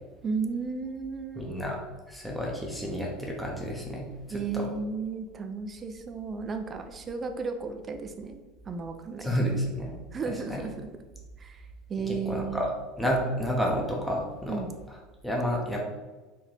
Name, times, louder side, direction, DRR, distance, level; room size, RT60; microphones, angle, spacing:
voice 1, 0.2-1.5 4.3-8.4 8.7-9.6 10.1-10.9 11.4-12.6 14.5-14.7, right 4 dB, 25° right, 6 dB, 0.5 m, -34 dB
voice 2, 1.4-1.8 2.1-4.0 4.5-4.6 9.2-10.0 10.5-10.6 12.1-12.7 13.0-14.6 15.2-15.8, equal, 5° left, -2 dB, 0.9 m, -30 dB
4.7 x 2.7 x 3.4 m, 1.2 s
figure-of-eight pair, 70°, 0 cm